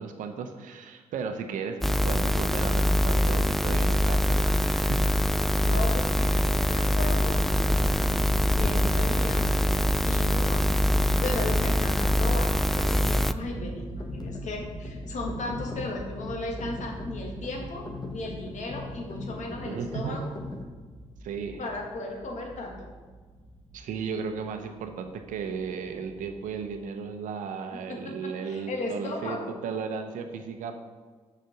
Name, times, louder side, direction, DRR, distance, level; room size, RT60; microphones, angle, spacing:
voice 1, 0.0-5.0 19.6-20.2 21.2-21.6 23.7-30.7, right 6 dB, 75° right, 6 dB, 0.8 m, -35 dB
sound 1, 1.8-13.3, equal, ahead, 0.3 m, -24 dB
voice 2, 5.6-7.4 8.6-9.5 9.9-20.3 21.6-22.9 27.7-29.5, left 2 dB, 60° left, 1 dB, 1.7 m, -36 dB
sound 2, 7.2-26.8, right 2 dB, 35° right, 2.1 m, -40 dB
sound 3, 12.7-20.6, left 2 dB, 30° left, 1.4 m, -41 dB
6.5 x 5.1 x 5.8 m, 1.4 s
supercardioid pair, 50°, 14 cm